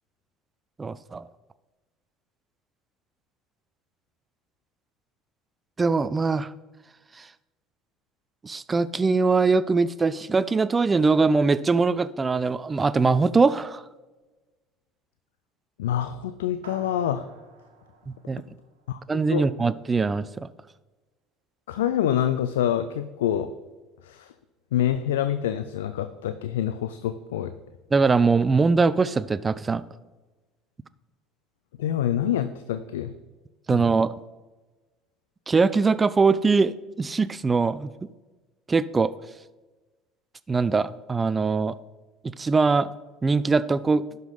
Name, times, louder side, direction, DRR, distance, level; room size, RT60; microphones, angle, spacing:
voice 1, 0.8-1.2 5.8-6.5 8.4-13.8 18.3-18.4 19.1-20.5 27.9-29.8 33.7-34.1 35.5-37.9 38.7-39.1 40.5-41.7 42.2-42.9 43.2-44.0, right 4 dB, 25° right, 17 dB, 0.4 m, -22 dB
voice 2, 15.8-17.2 18.9-19.0 19.3-19.4 21.7-23.5 24.0-24.3 24.7-27.5 31.8-33.1 33.7-33.8, left 10 dB, 80° left, 11 dB, 0.4 m, -26 dB
sound 1, 16.6-19.3, right 4 dB, 85° right, 1.4 m, -49 dB
12.0 x 5.3 x 3.9 m, 1.2 s
hypercardioid pair, 65°, 0 cm